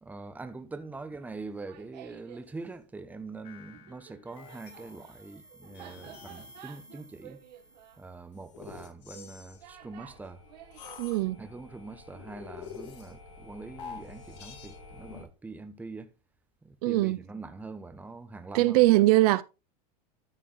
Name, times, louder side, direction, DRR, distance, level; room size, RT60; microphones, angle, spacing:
voice 1, 0.0-7.4 8.0-10.4 11.4-16.1 16.6-18.8, right 3 dB, 5° right, 1.0 m, -43 dB
Laughter, 1.4-2.5 3.7-11.0, right 12 dB, 80° right, 1.6 m, -52 dB
sound 1, 3.4-15.2, left 5 dB, 80° left, 3.6 m, -48 dB
voice 2, 11.0-11.4 16.8-17.2 18.5-19.4, right 18 dB, 65° right, 0.5 m, -21 dB
13.0 x 4.6 x 3.8 m
supercardioid pair, 140°, 21 cm